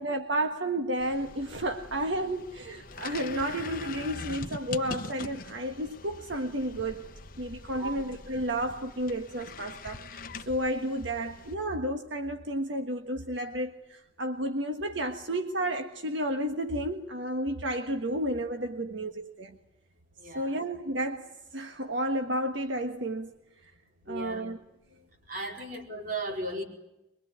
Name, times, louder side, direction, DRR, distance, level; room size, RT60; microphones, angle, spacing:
voice 1, 0.0-19.6 20.2-23.4 23.6-23.7 24.1-24.6 25.5-25.6, right 1 dB, 80° right, 1.5 m, -32 dB
sound 1, 1.0-11.5, left 4 dB, 50° left, 1.1 m, -43 dB
voice 2, 20.2-20.6 24.0-24.5 24.9-26.6, right 2 dB, 50° right, 4.6 m, -37 dB
23.5 x 23.0 x 9.4 m
head